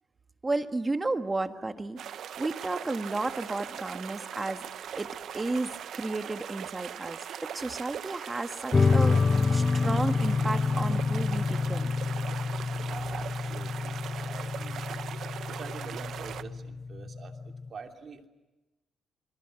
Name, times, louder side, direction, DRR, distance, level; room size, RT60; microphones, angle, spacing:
voice 1, 0.4-2.0 2.4-4.7 5.0-11.9, right 2 dB, 20° right, 8 dB, 1.6 m, -33 dB
sound 1, 2.0-16.4, right 9 dB, 65° right, 0.9 m, -40 dB
sound 2, 8.7-17.7, left 4 dB, 25° left, 1.0 m, -28 dB
voice 2, 12.8-18.3, right 5 dB, 45° right, 4 dB, 2.9 m, -46 dB
28.5 x 22.0 x 7.9 m, 1.1 s
cardioid pair, 90°, 0 cm